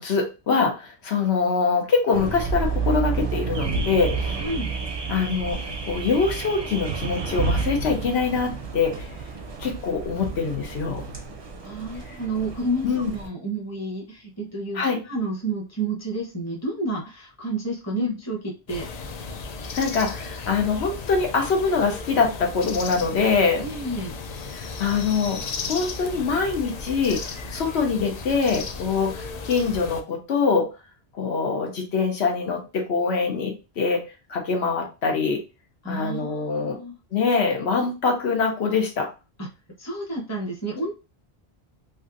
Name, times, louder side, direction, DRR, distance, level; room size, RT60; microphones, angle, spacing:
voice 1, 0.0-4.1 5.1-5.6 5.9-9.1 9.6-11.0 12.8-13.1 14.7-15.0 18.0-18.1 19.8-23.6 24.5-25.4 25.7-27.2 27.5-30.7 31.2-34.0 34.3-35.4 35.9-36.8 37.1-39.1, left 5 dB, 85° left, 2 dB, 1.1 m, -24 dB
Car / Alarm, 2.1-13.3, right 5 dB, 35° right, 0.5 m, -32 dB
sound 1, 3.5-11.3, right 3 dB, 90° right, 0.9 m, -33 dB
voice 2, 4.4-4.7 11.6-18.9 23.6-24.2 35.8-36.9 39.4-39.5 39.8-40.9, right 2 dB, 15° left, -2 dB, 0.9 m, -30 dB
sound 2, 18.7-30.0, left 4 dB, 55° left, 0.5 m, -35 dB
3.3 x 2.6 x 2.6 m, 0.30 s
omnidirectional pair, 1.1 m